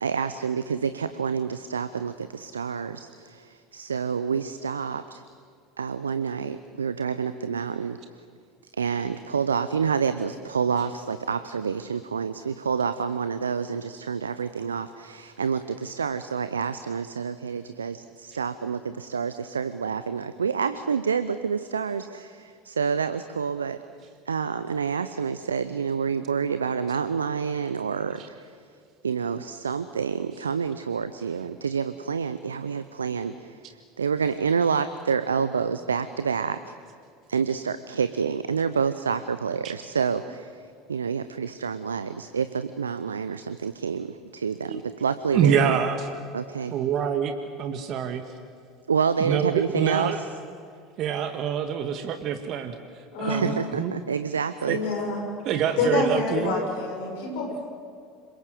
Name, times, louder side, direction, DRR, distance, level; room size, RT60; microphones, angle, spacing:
voice 1, 0.0-5.2 5.8-8.0 8.8-23.8 24.3-28.5 29.0-36.7 37.3-40.5 40.9-45.8 46.3-46.7 48.9-50.3 53.3-54.8, right 6 dB, 85° right, 12 dB, 0.7 m, -28 dB
voice 2, 45.3-46.1 46.7-47.3 47.6-48.2 49.2-50.2 51.0-52.8 53.2-53.9 54.7-54.8 55.5-56.6, right 8 dB, 50° right, 7 dB, 1.8 m, -25 dB
voice 3, 53.1-53.4 54.6-55.2 55.8-57.7, left 3 dB, 65° left, 2 dB, 6.8 m, -27 dB
26.5 x 23.0 x 7.8 m, 2.3 s
figure-of-eight pair, 70°, 0 cm